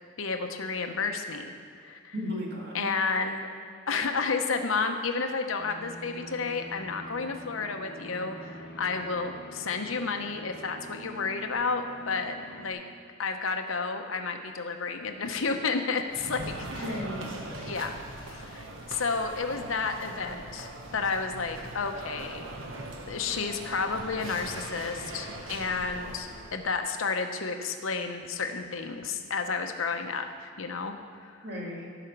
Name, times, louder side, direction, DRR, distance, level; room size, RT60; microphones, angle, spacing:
voice 1, 0.2-2.1 2.7-3.5 3.9-12.8 13.2-16.4 16.7-16.9 17.5-17.9 18.3-22.4 23.1-30.9 31.2-31.3, left 4 dB, 80° left, 5 dB, 0.9 m, -31 dB
voice 2, 2.1-2.9 16.7-17.4 31.4-31.9, left 1 dB, 55° right, -2 dB, 1.9 m, -35 dB
sound 1, 5.6-12.7, equal, 55° left, 1.9 m, -45 dB
sound 2, 16.1-26.7, right 1 dB, 70° right, 1.1 m, -41 dB
15.0 x 5.1 x 6.0 m, 2.3 s
head